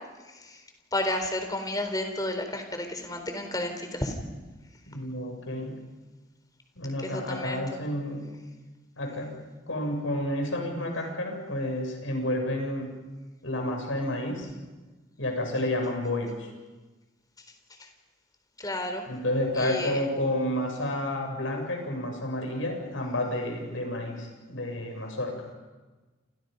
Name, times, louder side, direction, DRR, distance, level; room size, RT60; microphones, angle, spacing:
voice 1, 0.9-4.1 7.0-7.6 18.6-19.1 19.6-20.0, left 1 dB, 20° left, 6 dB, 4.0 m, -31 dB
voice 2, 4.9-5.8 6.8-8.3 9.0-9.4 9.7-12.9 13.4-14.5 15.2-16.3 19.1-25.4, left 1 dB, 80° left, 3 dB, 7.6 m, -30 dB
29.5 x 28.5 x 5.5 m, 1.2 s
head